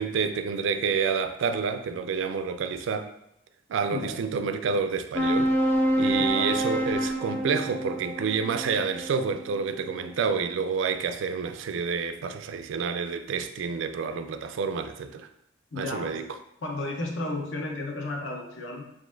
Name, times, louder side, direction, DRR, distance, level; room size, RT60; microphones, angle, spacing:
voice 1, 0.0-3.1 3.7-5.5 6.0-15.3 15.8-16.2, right 5 dB, 65° right, 0.3 m, -29 dB
sound 1, 5.1-10.0, equal, 10° left, 0.4 m, -27 dB
voice 2, 6.2-6.5 15.7-16.3 16.6-18.8, left 2 dB, 65° left, 0.7 m, -33 dB
6.0 x 2.5 x 2.4 m
head